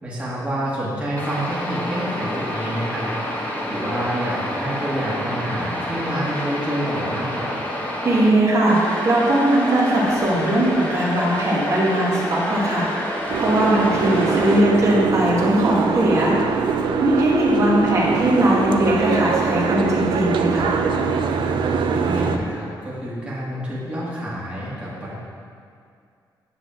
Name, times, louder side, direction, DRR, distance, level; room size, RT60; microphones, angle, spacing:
voice 1, 0.0-3.1 3.7-7.5 21.9-25.1, equal, 15° right, -7 dB, 1.9 m, -28 dB
sound 1, 1.2-8.3 8.7-14.6, equal, 20° left, 1.3 m, -28 dB
voice 2, 8.0-12.9 13.4-16.4 17.0-20.7, right 1 dB, 40° right, -5 dB, 2.1 m, -19 dB
Boat Water vehicle, 13.3-22.4, right 5 dB, 80° right, 0.6 m, -23 dB
9.8 x 4.1 x 7.5 m, 2.2 s
wide cardioid pair, 175°, 8 cm